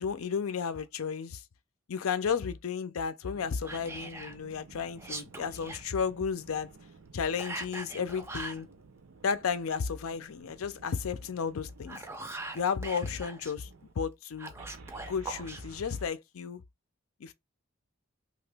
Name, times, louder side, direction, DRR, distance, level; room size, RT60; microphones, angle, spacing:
voice 1, 0.0-1.4 1.9-6.7 7.1-8.7 9.2-12.0 12.5-13.7 14.0-14.5 15.1-16.6 17.2-17.3, left 6 dB, 85° left, 0.5 m, -33 dB
sound 1, 3.3-13.9 14.5-16.1, right 3 dB, 80° right, 0.6 m, -53 dB
Whispering, 3.6-4.4 5.0-5.8 7.4-8.6 11.7-13.5 14.4-15.6, right 2 dB, 10° right, 0.4 m, -41 dB
2.9 x 2.5 x 3.3 m
head